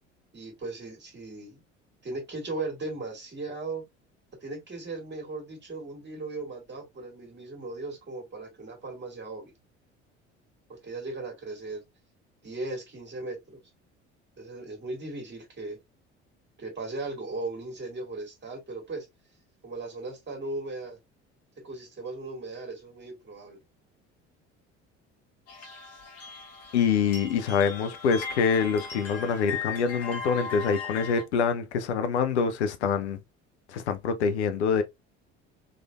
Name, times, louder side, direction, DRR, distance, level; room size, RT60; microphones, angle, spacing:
voice 1, 0.3-1.6 2.0-3.8 4.4-9.5 10.7-11.8 12.4-13.6 14.4-15.8 16.6-19.1 19.6-21.0 21.6-23.6, right 2 dB, 30° right, 2.0 m, -37 dB
sound 1, 25.5-31.2, left 5 dB, 45° left, 1.5 m, -38 dB
voice 2, 26.7-33.2 33.7-34.8, left 6 dB, 75° left, 0.6 m, -25 dB
3.7 x 3.2 x 2.3 m
figure-of-eight pair, 55°, 34 cm